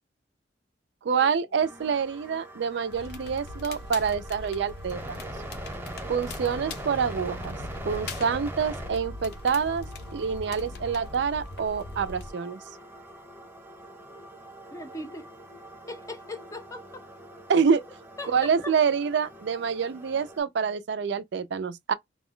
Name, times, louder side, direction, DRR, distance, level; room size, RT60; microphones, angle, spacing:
voice 1, 1.0-5.2 6.1-7.6 7.9-9.9 10.1-12.6 17.5-17.8 18.3-21.9, right 6 dB, 70° right, 0.4 m, -26 dB
sound 1, 1.6-20.4, right 1 dB, 10° right, 0.9 m, -43 dB
Crackle, 2.9-12.3, left 2 dB, 60° left, 0.6 m, -40 dB
voice 2, 14.7-15.3 15.9-17.0 18.2-18.7, left 1 dB, 20° left, 0.6 m, -39 dB
2.3 x 2.2 x 3.6 m
head